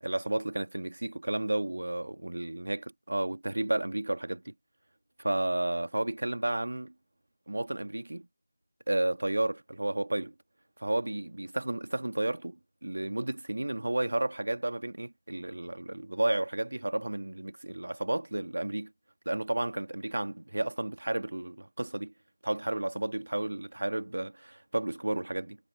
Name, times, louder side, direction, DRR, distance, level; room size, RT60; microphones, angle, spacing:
voice 1, 0.0-2.8 3.1-4.5 5.2-6.9 7.5-8.3 8.9-10.3 10.8-18.9 19.3-22.1 22.4-25.6, right 1 dB, 85° right, 1.7 m, -32 dB
figure-of-eight pair, 175°, 0 cm